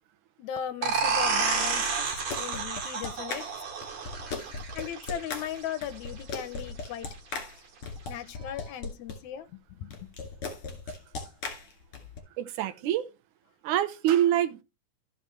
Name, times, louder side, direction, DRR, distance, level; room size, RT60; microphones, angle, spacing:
voice 1, 0.4-3.4 4.7-7.1 8.1-10.1, left 10 dB, 75° left, 2.1 m, -37 dB
sound 1, 0.8-6.2, right 5 dB, 60° right, 3.0 m, -30 dB
sound 2, 2.1-9.2 9.9-12.2, left 4 dB, 50° left, 3.1 m, -38 dB
voice 2, 12.4-13.1 13.6-14.6, right 11 dB, 85° right, 2.3 m, -26 dB
14.0 x 5.7 x 3.2 m
omnidirectional pair, 3.5 m